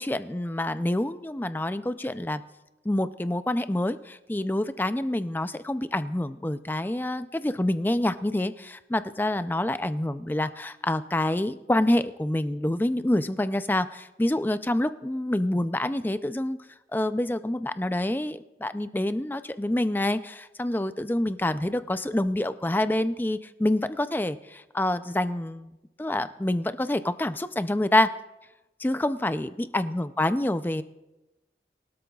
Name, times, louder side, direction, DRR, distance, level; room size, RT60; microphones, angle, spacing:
voice 1, 0.0-2.4 2.9-16.6 16.9-25.7 26.0-28.1 28.8-30.8, left 1 dB, 10° left, 12 dB, 0.4 m, -27 dB
23.0 x 12.5 x 2.3 m, 1.0 s
head